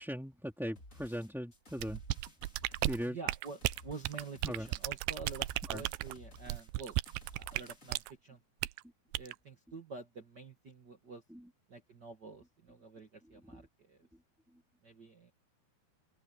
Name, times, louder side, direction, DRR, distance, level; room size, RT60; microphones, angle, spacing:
voice 1, 0.0-2.0 2.8-3.2 4.4-4.7 5.6-5.8 11.3-11.5 13.4-13.7, equal, ahead, 1.6 m, -39 dB
sound 1, 0.8-8.1, left 1 dB, 20° left, 4.5 m, -57 dB
sound 2, 1.8-8.1 8.6-8.8 9.1-9.3, right 18 dB, 85° right, 2.7 m, -35 dB
voice 2, 3.0-6.9 7.3-8.4 9.2-11.2 11.7-14.0 14.8-15.3, right 4 dB, 65° right, 1.0 m, -48 dB
open air
omnidirectional pair, 4.9 m